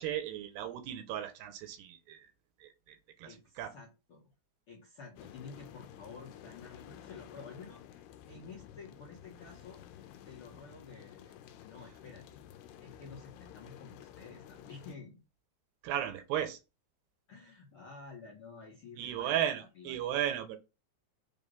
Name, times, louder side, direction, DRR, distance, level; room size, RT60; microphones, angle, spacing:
voice 1, 0.0-2.3 2.6-3.7 15.8-16.6 19.0-20.6, right 10 dB, 80° right, 2.9 m, -35 dB
voice 2, 3.2-4.3 4.7-9.8 10.2-11.4 11.6-12.2 12.8-15.2 17.3-20.1, left 4 dB, 55° left, 1.5 m, -51 dB
sound 1, 5.1-15.0, left 10 dB, 80° left, 2.6 m, -52 dB
7.4 x 3.7 x 5.4 m
omnidirectional pair, 4.9 m